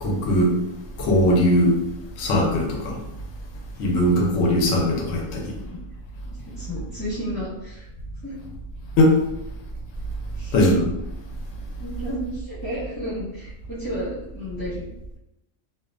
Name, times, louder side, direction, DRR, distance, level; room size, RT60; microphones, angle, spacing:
voice 1, 0.0-0.5 1.0-1.8 2.2-3.0 3.8-5.5 9.0-9.2 10.5-10.9, equal, 60° left, 0 dB, 0.8 m, -19 dB
voice 2, 6.2-7.9 8.2-8.3 10.3-10.5 11.8-14.9, equal, 15° left, -10 dB, 1.1 m, -32 dB
2.5 x 2.1 x 2.4 m, 0.87 s
omnidirectional pair, 1.5 m